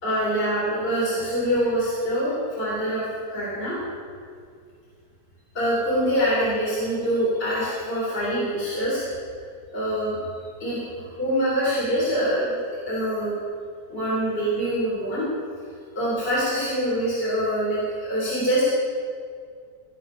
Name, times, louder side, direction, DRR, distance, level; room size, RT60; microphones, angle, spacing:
voice 1, 0.0-3.1 3.3-3.8 5.5-9.0 9.7-10.2 10.6-13.3 13.9-15.3 16.0-18.7, equal, 30° left, -7 dB, 3.5 m, -25 dB
17.0 x 8.4 x 5.6 m, 2.2 s
omnidirectional pair, 1.9 m